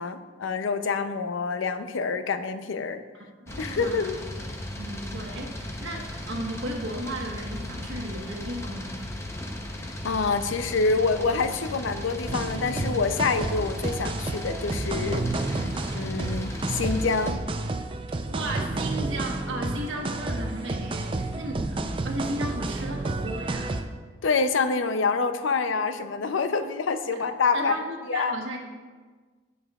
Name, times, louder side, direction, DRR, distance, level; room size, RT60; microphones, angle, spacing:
voice 1, 0.0-3.0 3.6-4.2 10.0-15.6 15.9-17.4 24.2-27.8 28.1-28.3, left 4 dB, 80° left, 10 dB, 0.5 m, -26 dB
voice 2, 3.1-4.1 4.8-9.1 15.6-15.8 18.1-21.8 22.0-23.8 27.1-27.2 27.5-28.6, right 1 dB, 75° right, 0 dB, 1.3 m, -35 dB
sound 1, 3.5-17.3, left 1 dB, 15° left, 0.7 m, -36 dB
sound 2, 12.3-23.8, right 2 dB, 25° right, 0.4 m, -30 dB
16.0 x 5.5 x 2.4 m, 1.4 s
head